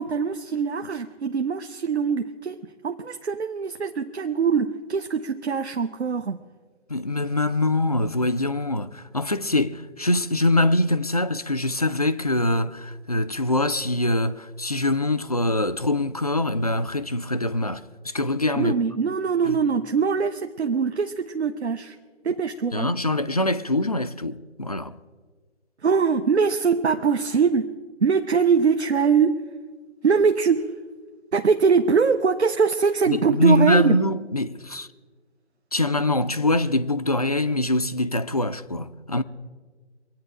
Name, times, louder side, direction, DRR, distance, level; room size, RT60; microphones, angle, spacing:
voice 1, 0.0-2.6 2.8-6.4 18.6-22.0 22.2-22.9 25.8-27.7 28.0-29.4 30.0-30.7 31.3-34.0, right 5 dB, 70° right, 0.9 m, -22 dB
voice 2, 6.9-18.8 19.4-19.6 22.7-25.0 33.1-34.9 35.7-39.2, left 1 dB, 35° left, 0.4 m, -24 dB
24.0 x 9.1 x 4.9 m
figure-of-eight pair, 150°, 35 cm